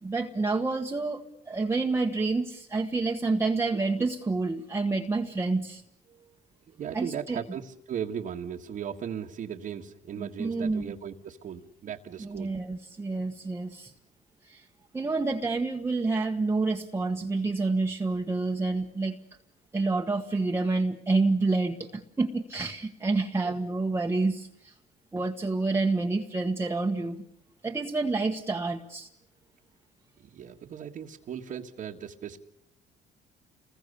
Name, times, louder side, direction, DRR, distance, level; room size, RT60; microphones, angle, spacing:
voice 1, 0.0-5.8 6.9-7.4 10.2-10.9 12.2-13.9 14.4-14.7 14.9-19.2 19.7-24.8 25.1-27.2 27.6-29.1, right 3 dB, 15° right, 2 dB, 1.5 m, -28 dB
voice 2, 6.7-12.5 23.4-23.5 30.2-32.4, right 8 dB, 50° right, 0 dB, 1.7 m, -37 dB
29.5 x 21.5 x 6.9 m, 0.75 s
cardioid pair, 110°, 17 cm